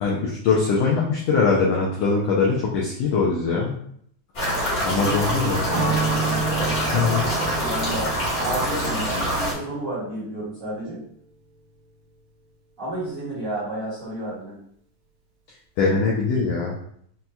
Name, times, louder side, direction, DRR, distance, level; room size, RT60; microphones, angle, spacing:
voice 1, 0.0-3.7 4.8-5.7 6.9-7.3 15.8-16.8, left 4 dB, 80° left, -3 dB, 1.5 m, -22 dB
sound 1, 4.3-9.5, equal, 55° left, 1.0 m, -25 dB
voice 2, 4.8-6.8 7.6-11.0 12.8-14.6, right 1 dB, 35° right, -10 dB, 1.6 m, -31 dB
Strum, 5.7-10.4, right 4 dB, 75° right, 2.2 m, -30 dB
6.0 x 2.7 x 2.3 m, 0.66 s
omnidirectional pair, 3.5 m